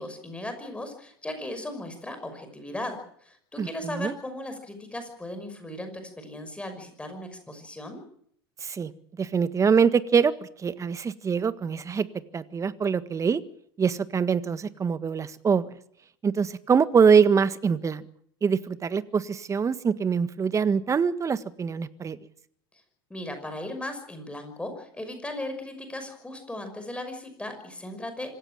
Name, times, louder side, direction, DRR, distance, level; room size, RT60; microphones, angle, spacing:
voice 1, 0.0-8.0 23.1-28.3, left 1 dB, 10° left, 7 dB, 5.9 m, -37 dB
voice 2, 3.6-4.1 8.6-8.9 9.2-10.3 10.6-12.1 12.3-13.4 13.8-15.7 16.2-18.0 18.4-22.2, right 6 dB, 25° right, 13 dB, 1.6 m, -24 dB
26.0 x 15.5 x 9.0 m, 0.66 s
hypercardioid pair, 85°, 13 cm